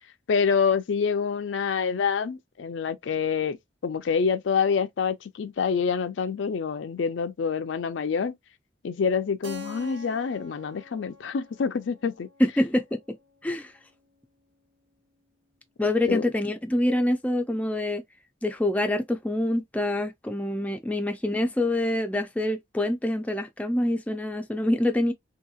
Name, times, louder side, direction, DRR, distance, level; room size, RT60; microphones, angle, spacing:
voice 1, 0.3-3.6 3.8-8.4 8.8-12.3 16.1-16.3, left 6 dB, 85° left, 0.4 m, -26 dB
Keyboard (musical), 9.4-14.0, left 1 dB, 80° right, 0.6 m, -46 dB
voice 2, 12.4-13.2 13.4-13.7 15.8-18.0 18.4-25.1, left 1 dB, 10° left, 0.3 m, -26 dB
2.8 x 2.7 x 2.3 m
head